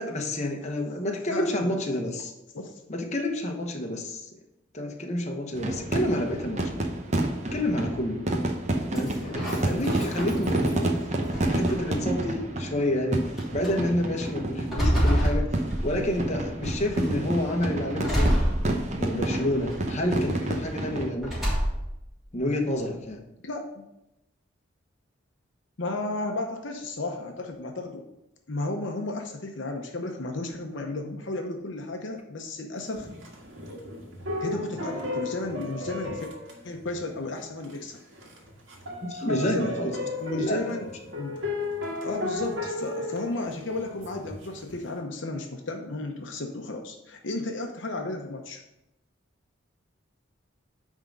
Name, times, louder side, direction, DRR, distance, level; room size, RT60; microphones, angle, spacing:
voice 1, 0.0-2.3 2.9-4.3 4.7-6.8 7.5-8.3 8.9-15.5 15.8-18.3 19.0-21.4 22.3-23.2 39.0-39.9 40.2-40.7, left 1 dB, 35° left, 1 dB, 1.0 m, -29 dB
voice 2, 1.3-1.8 2.5-2.8 23.4-23.8 25.8-28.0 28.5-33.1 34.4-36.3 36.6-38.0 39.3-39.9 40.2-40.9 41.2-41.4 42.0-48.6, left 2 dB, 65° left, 3 dB, 0.8 m, -33 dB
sound 1, 5.6-21.1, right 1 dB, 35° right, 0.8 m, -29 dB
sound 2, 8.9-10.8 11.3-12.1 12.8-12.9 13.4-13.7 14.2-16.2 16.6-17.2 18.0-19.2 19.6-20.2 21.2-22.0, equal, ahead, 3.0 m, -27 dB
sound 3, 32.9-37.3 37.6-37.8 38.1-44.8, left 2 dB, 65° right, 1.8 m, -35 dB
9.6 x 3.7 x 5.3 m, 0.88 s
head